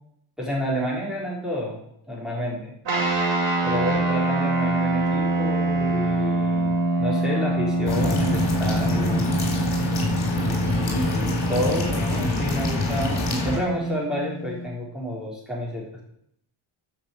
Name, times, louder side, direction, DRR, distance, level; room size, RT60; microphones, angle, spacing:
voice 1, 0.4-1.8 2.1-2.7 3.6-9.3 10.4-15.8, equal, ahead, -5 dB, 4.1 m, -30 dB
sound 1, 2.8-14.7, right 2 dB, 65° right, 3.8 m, -25 dB
sound 2, 7.9-13.6, left 2 dB, 50° left, 4.1 m, -25 dB
10.5 x 6.0 x 8.1 m, 0.73 s
wide cardioid pair, 140°, 49 cm